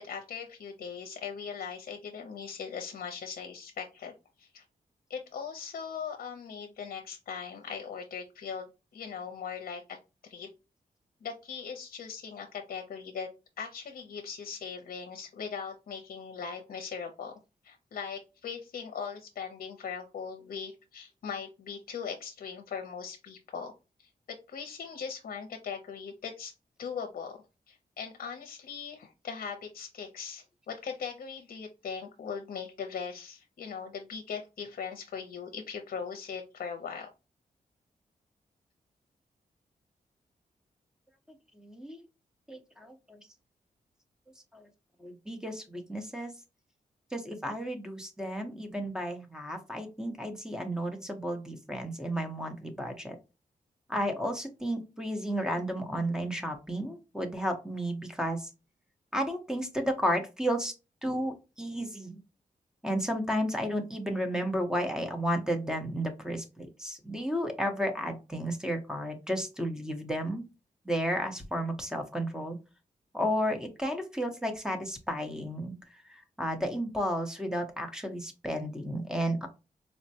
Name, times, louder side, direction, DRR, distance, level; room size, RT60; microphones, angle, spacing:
voice 1, 0.0-4.6 5.1-8.7 8.9-10.0 10.2-10.5 11.2-13.3 13.6-17.3 17.6-23.7 24.0-26.5 26.8-27.4 27.7-37.1, left 6 dB, 75° left, 4 dB, 0.6 m, -40 dB
voice 2, 41.6-42.0 42.5-42.9 44.5-44.6 45.0-46.3 47.1-53.2 53.9-58.5 59.1-60.7 61.0-62.1 62.8-70.4 70.9-72.6 73.1-75.7 76.4-79.5, equal, 5° right, 5 dB, 0.9 m, -32 dB
4.4 x 2.1 x 2.7 m, 0.28 s
cardioid pair, 75°, 15 cm